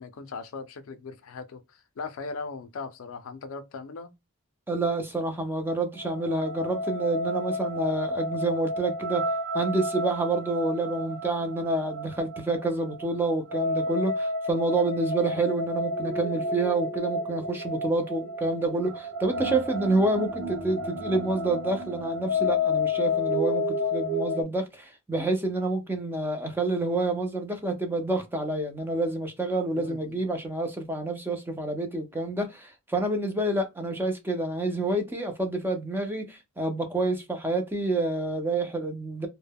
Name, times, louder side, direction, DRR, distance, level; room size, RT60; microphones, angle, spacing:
voice 1, 0.0-4.1 29.7-30.2, left 4 dB, 65° left, 0.4 m, -39 dB
voice 2, 4.7-9.3 9.5-39.3, right 2 dB, 10° right, 0.4 m, -28 dB
sound 1, 6.0-24.4, left 2 dB, 80° right, 0.7 m, -31 dB
2.1 x 2.1 x 3.4 m
head